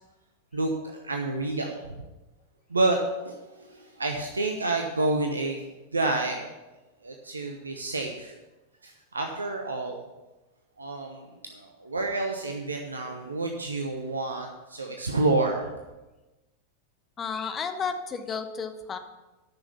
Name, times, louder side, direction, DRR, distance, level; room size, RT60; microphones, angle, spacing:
voice 1, 1.0-1.8 2.7-3.0 3.2-5.6 5.9-6.5 7.0-8.3 8.8-10.0 10.8-15.7, right 2 dB, 75° right, 2 dB, 0.9 m, -29 dB
voice 2, 17.2-19.0, left 5 dB, 25° left, 8 dB, 1.0 m, -32 dB
10.0 x 6.2 x 6.9 m, 1.1 s
figure-of-eight pair, 90°, 0 cm